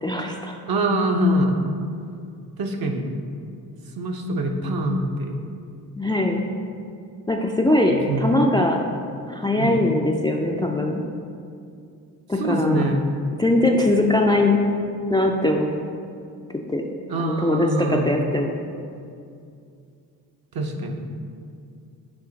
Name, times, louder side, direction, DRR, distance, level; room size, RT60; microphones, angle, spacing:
voice 1, 0.0-0.6 5.9-6.4 7.3-8.8 9.3-11.0 12.3-12.8 13.4-14.6 15.1-15.7 16.7-16.8 17.2-18.5, left 2 dB, 10° left, 1 dB, 0.4 m, -21 dB
voice 2, 0.7-1.6 2.6-3.1 4.0-5.4 7.9-8.3 9.6-9.8 12.4-13.0 17.1-18.2 20.5-21.1, right 1 dB, 50° right, 2 dB, 0.9 m, -24 dB
8.4 x 3.1 x 3.9 m, 2.4 s
supercardioid pair, 50°, 45 cm